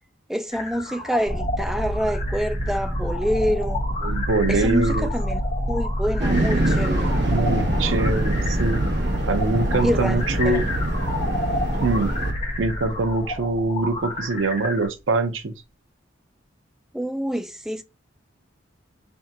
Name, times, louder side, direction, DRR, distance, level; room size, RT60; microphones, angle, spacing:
voice 1, 0.3-3.8 4.5-5.4 5.7-7.1 9.8-10.6 16.9-17.8, equal, ahead, 0.3 m, -26 dB
sound 1, 0.5-14.9, left 2 dB, 40° left, 1.2 m, -33 dB
sound 2, 1.2-14.2, equal, 40° right, 1.3 m, -27 dB
voice 2, 4.0-5.1 7.3-8.8 9.3-10.6 11.8-12.1 12.6-15.5, right 3 dB, 85° right, 0.7 m, -23 dB
sound 3, 6.2-12.3, right 2 dB, 60° right, 1.0 m, -26 dB
3.5 x 3.5 x 2.8 m
head